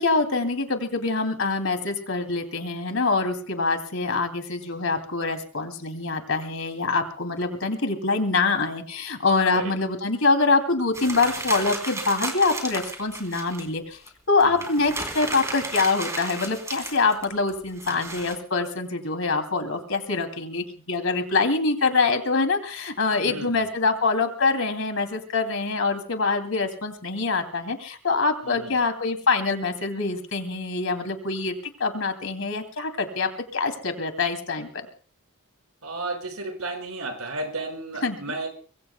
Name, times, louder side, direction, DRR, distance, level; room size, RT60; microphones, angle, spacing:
voice 1, 0.0-14.0 14.3-31.5 31.8-34.7 38.0-38.3, left 3 dB, 65° left, 7 dB, 2.7 m, -25 dB
sound 1, 10.9-13.7 14.1-14.2 14.4-18.3, right 2 dB, 15° right, 3.1 m, -33 dB
voice 2, 23.2-23.6 28.4-28.7 35.8-38.5, right 2 dB, 80° right, 4 dB, 5.4 m, -33 dB
24.5 x 22.5 x 2.2 m, 0.41 s
head